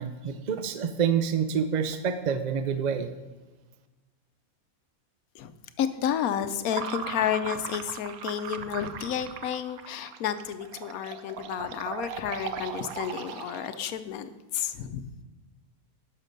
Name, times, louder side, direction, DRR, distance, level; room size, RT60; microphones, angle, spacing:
voice 1, 0.0-3.1, right 7 dB, 55° right, 9 dB, 0.4 m, -27 dB
voice 2, 5.8-15.1, left 9 dB, 85° left, 11 dB, 1.2 m, -31 dB
sound 1, 6.7-13.9, right 8 dB, 85° right, 1.1 m, -38 dB
11.5 x 6.6 x 5.2 m, 1.2 s
omnidirectional pair, 1.5 m